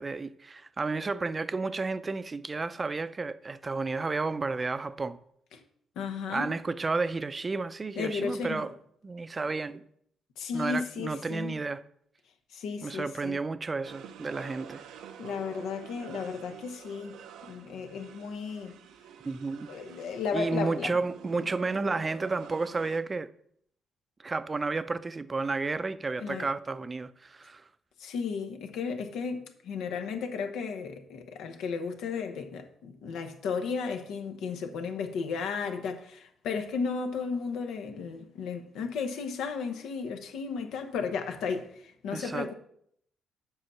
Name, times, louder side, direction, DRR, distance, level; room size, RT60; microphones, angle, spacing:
voice 1, 0.0-5.2 6.3-8.7 9.0-9.8 10.5-11.8 12.8-14.8 19.2-19.7 20.3-23.3 24.2-27.6 42.1-42.5, right 3 dB, 30° right, 0.5 m, -32 dB
voice 2, 6.0-6.5 8.0-8.7 10.4-11.5 12.5-13.4 15.2-18.7 19.7-21.0 26.2-26.5 28.0-42.5, left 5 dB, 80° left, 1.0 m, -34 dB
sound 1, 13.8-23.0, right 8 dB, 85° right, 0.6 m, -48 dB
7.9 x 5.7 x 5.7 m
cardioid pair, 75°, 0 cm